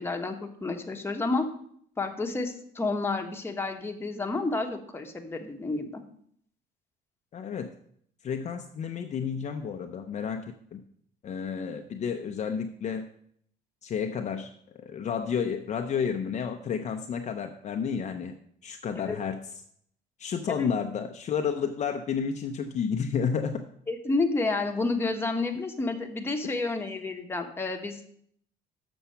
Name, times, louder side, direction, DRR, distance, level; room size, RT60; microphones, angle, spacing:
voice 1, 0.0-1.4 2.0-6.0 19.1-19.2 20.5-20.7 23.9-28.1, left 3 dB, 15° left, 3 dB, 1.2 m, -30 dB
voice 2, 7.3-7.7 8.2-10.5 10.7-10.8 11.2-13.1 13.8-18.3 18.6-19.4 20.2-23.7 26.4-26.6, left 6 dB, 45° left, 5 dB, 0.6 m, -31 dB
6.9 x 6.2 x 5.6 m, 0.65 s
cardioid pair, 110°, 17 cm